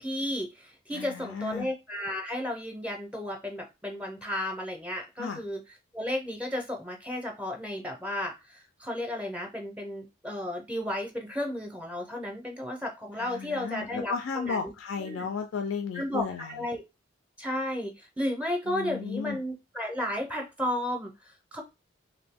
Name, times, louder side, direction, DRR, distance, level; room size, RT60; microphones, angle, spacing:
voice 1, 0.0-5.6 5.9-14.6 15.0-15.3 15.9-16.8 17.4-21.6, left 1 dB, 5° right, 2 dB, 0.5 m, -33 dB
voice 2, 0.9-1.7 5.2-5.4 13.2-16.5 18.7-19.4, left 6 dB, 75° left, 6 dB, 0.4 m, -34 dB
2.6 x 2.6 x 3.4 m, 0.24 s
head